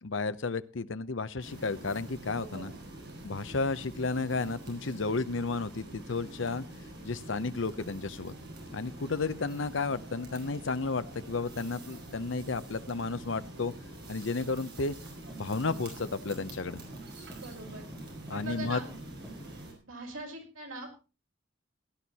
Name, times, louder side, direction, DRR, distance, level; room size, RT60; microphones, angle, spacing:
voice 1, 0.0-2.7 3.2-6.6 7.0-8.3 8.7-13.7 14.1-15.0 15.4-16.8 18.3-18.8, left 3 dB, 65° left, 13 dB, 0.7 m, -32 dB
sound 1, 1.4-19.7, right 1 dB, 55° right, 5.5 m, -46 dB
voice 2, 2.3-2.7 17.4-17.9 18.3-18.9 19.8-21.0, right 2 dB, 90° right, 2 dB, 5.6 m, -42 dB
sound 2, 15.3-19.5, right 1 dB, 5° right, 5.4 m, -48 dB
17.5 x 11.0 x 4.2 m, 0.31 s
head